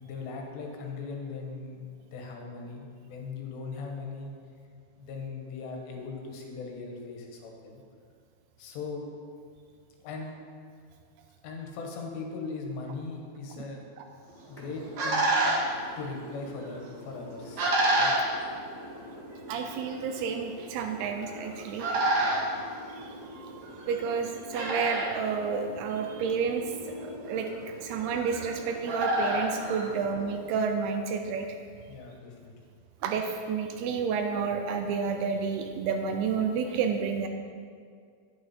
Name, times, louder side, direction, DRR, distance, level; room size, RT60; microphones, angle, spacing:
voice 1, 0.0-4.3 5.0-7.8 8.6-9.0 10.0-10.4 11.4-13.8 14.5-15.3 16.0-17.7 18.0-18.1 22.2-22.5 29.9-30.0 31.9-32.5 34.4-34.6, left 4 dB, 80° left, 1 dB, 3.4 m, -39 dB
sound 1, 14.3-30.6, right 1 dB, 50° right, 2.7 m, -32 dB
voice 2, 19.5-22.1 22.9-23.6 23.9-26.7 27.0-27.5 27.8-31.5 33.0-37.3, right 6 dB, 80° right, 4 dB, 2.5 m, -30 dB
10.5 x 8.6 x 4.2 m, 2.2 s
omnidirectional pair, 4.9 m